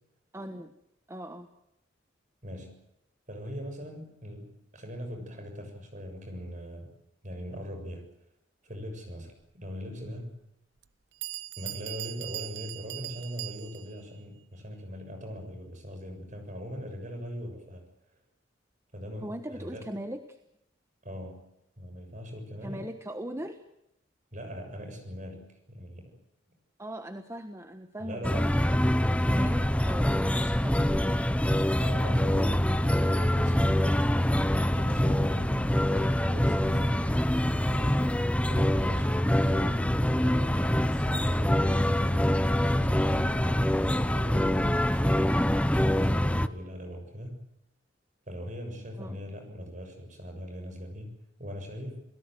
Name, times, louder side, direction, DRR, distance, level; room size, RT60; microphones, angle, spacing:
voice 1, 0.3-0.7 1.1-1.5 19.2-20.4 22.6-23.6 26.8-30.9 49.0-49.2, right 1 dB, 15° right, 7 dB, 1.3 m, -40 dB
voice 2, 2.4-2.7 3.3-6.9 7.2-8.1 8.6-10.4 11.6-17.8 18.9-19.9 21.0-21.5 21.8-22.9 24.3-26.2 28.0-28.6 31.8-35.8 36.1-47.4 48.3-52.0, equal, 40° right, 6 dB, 7.0 m, -41 dB
Bell, 10.8-10.9 11.2-14.0, right 16 dB, 70° right, 0.9 m, -39 dB
sound 1, 28.2-46.5, left 1 dB, 5° left, 0.8 m, -25 dB
28.5 x 18.5 x 7.9 m, 0.79 s
head